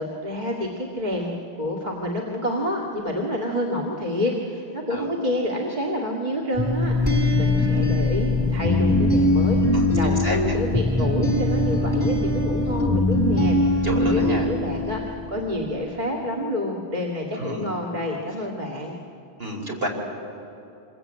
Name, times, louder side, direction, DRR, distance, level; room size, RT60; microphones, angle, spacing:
voice 1, 0.0-9.6 9.9-19.0, left 1 dB, 40° right, 0 dB, 2.3 m, -28 dB
sound 1, 6.6-15.3, left 2 dB, 10° right, 2.5 m, -21 dB
voice 2, 9.7-10.4 13.8-14.5 17.4-17.7 19.4-19.9, right 1 dB, 60° right, 0 dB, 4.4 m, -30 dB
26.5 x 22.0 x 8.9 m, 2.9 s
omnidirectional pair, 1.1 m